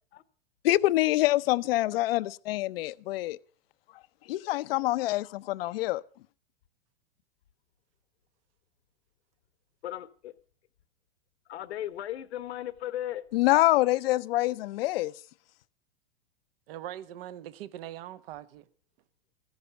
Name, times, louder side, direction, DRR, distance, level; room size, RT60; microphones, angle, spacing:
voice 1, 0.6-3.4 4.3-6.0 13.3-15.1, left 17 dB, 65° left, 0.7 m, -25 dB
voice 2, 9.8-10.3 11.5-13.2, left 12 dB, 80° left, 1.3 m, -36 dB
voice 3, 16.7-18.7, right 12 dB, 60° right, 1.1 m, -41 dB
15.0 x 10.5 x 6.8 m
hypercardioid pair, 125°, 32 cm